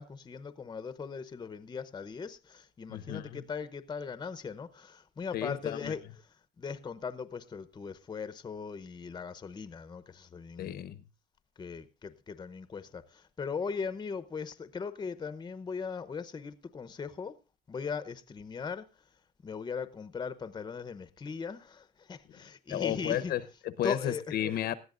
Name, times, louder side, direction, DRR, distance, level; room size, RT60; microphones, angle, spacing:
voice 1, 0.0-6.0 6.6-10.7 11.6-17.4 17.7-18.9 19.4-23.3 23.8-24.2, left 5 dB, 25° left, 0.8 m, -39 dB
voice 2, 2.9-3.4 5.3-5.9 10.6-11.0 22.7-24.7, left 11 dB, 65° left, 0.9 m, -33 dB
19.0 x 13.5 x 2.5 m
cardioid pair, 125°, 17 cm